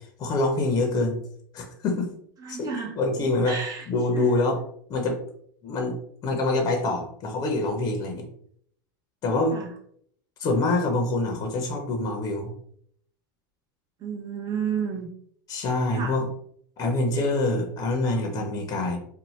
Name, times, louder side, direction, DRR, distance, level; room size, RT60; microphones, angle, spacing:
voice 1, 0.2-1.2 1.5-2.1 2.5-3.6 3.9-4.6 4.9-5.2 5.6-6.0 6.2-8.2 9.2-9.6 10.4-12.5 15.5-16.3 16.8-19.0, left 2 dB, 35° left, 3 dB, 0.6 m, -25 dB
voice 2, 2.4-2.9 3.5-3.8 4.1-4.3 9.5-9.7 14.0-15.1 15.9-16.1, right 6 dB, 35° right, 1 dB, 0.8 m, -31 dB
2.6 x 2.1 x 3.1 m, 0.66 s
hypercardioid pair, 110°, 11 cm